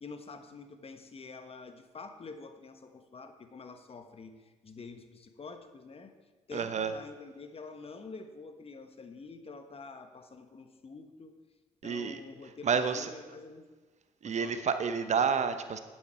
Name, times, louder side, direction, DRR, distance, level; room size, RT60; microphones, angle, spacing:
voice 1, 0.0-6.1 6.5-11.3 11.8-13.6 14.2-14.6, left 4 dB, 35° left, 8 dB, 1.3 m, -47 dB
voice 2, 6.5-6.9 11.8-12.2 12.6-13.1 14.2-15.8, right 6 dB, 45° right, 9 dB, 1.0 m, -29 dB
11.0 x 9.2 x 4.6 m, 1.3 s
hypercardioid pair, 50°, 16 cm